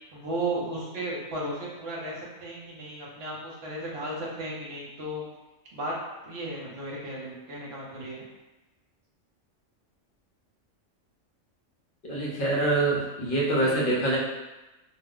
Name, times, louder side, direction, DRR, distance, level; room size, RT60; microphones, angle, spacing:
voice 1, 0.1-5.2 5.7-5.9 6.2-8.2 13.6-13.8, right 1 dB, 60° right, -4 dB, 1.0 m, -35 dB
voice 2, 12.0-14.2, right 2 dB, 50° left, -4 dB, 0.8 m, -25 dB
2.4 x 2.1 x 3.6 m, 1.1 s
omnidirectional pair, 1.3 m